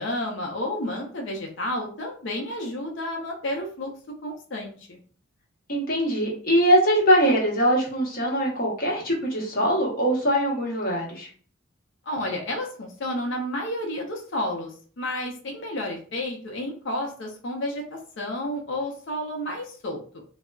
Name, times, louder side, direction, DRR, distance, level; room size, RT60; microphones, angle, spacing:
voice 1, 0.0-3.9 4.2-5.0 12.1-20.0, left 1 dB, 65° left, 0 dB, 0.6 m, -31 dB
voice 2, 5.7-11.3, equal, 50° left, -2 dB, 0.9 m, -22 dB
3.6 x 2.0 x 2.2 m, 0.43 s
head